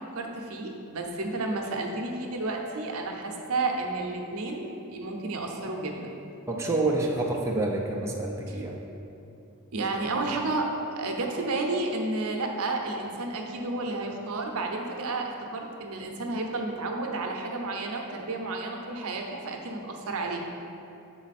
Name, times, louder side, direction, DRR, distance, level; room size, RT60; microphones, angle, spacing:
voice 1, 0.0-6.1 8.5-8.6 9.7-20.4, right 2 dB, 70° right, 1 dB, 0.7 m, -31 dB
voice 2, 6.5-8.7, right 2 dB, 10° right, -2 dB, 0.5 m, -28 dB
7.2 x 3.9 x 4.1 m, 2.7 s
head